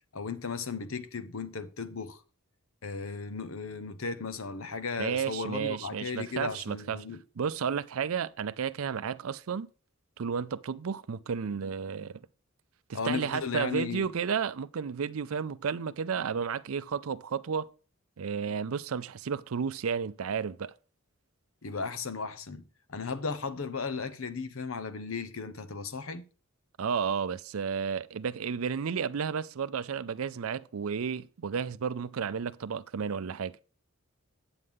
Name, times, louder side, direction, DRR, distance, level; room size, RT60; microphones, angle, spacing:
voice 1, 0.1-2.2 2.8-7.2 12.9-14.1 21.6-26.2, left 5 dB, 80° left, 0.9 m, -35 dB
voice 2, 5.0-7.0 7.4-9.7 10.2-12.2 12.9-17.7 18.2-20.7 26.8-33.6, right 6 dB, 90° right, 0.5 m, -32 dB
8.8 x 7.9 x 3.6 m
head